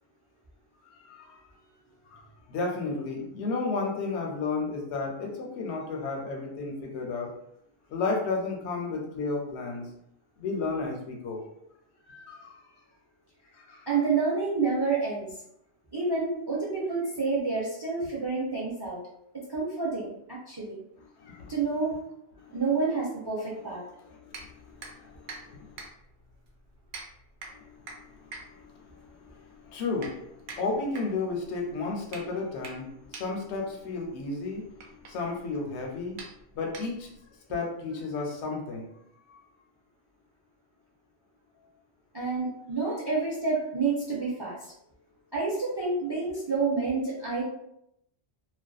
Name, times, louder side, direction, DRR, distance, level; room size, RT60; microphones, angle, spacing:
voice 1, 0.8-1.4 2.1-2.2 2.5-7.3 7.9-9.9 10.4-11.4 12.1-12.5 13.5-13.9 21.2-21.5 22.4-22.6 24.1-25.9 27.5-28.9 29.2-36.2 36.5-37.1 37.5-38.9 39.3-39.4, left 3 dB, 80° left, 1 dB, 0.9 m, -33 dB
voice 2, 13.9-15.4 15.9-19.0 19.5-20.8 21.5-22.0 22.5-23.8 42.1-44.7 45.3-47.4, right 4 dB, 45° right, -6 dB, 0.3 m, -29 dB
sound 1, 24.3-37.3, right 3 dB, 75° right, 0.8 m, -47 dB
2.5 x 2.3 x 2.2 m, 0.78 s
omnidirectional pair, 1.1 m